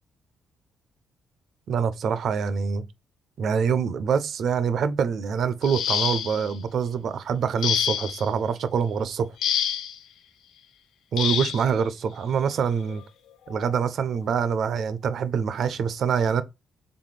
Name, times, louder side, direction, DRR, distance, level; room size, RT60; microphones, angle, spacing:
voice 1, 1.7-2.8 3.4-9.3 11.1-13.0 13.5-16.4, right 6 dB, 65° right, 0.5 m, -25 dB
sound 1, 5.6-6.5 7.6-8.3 9.4-10.0 11.2-11.6 12.8-13.0 13.5-13.7, left 9 dB, 85° left, 0.5 m, -27 dB
4.1 x 3.5 x 3.3 m
cardioid pair, 90°, 0 cm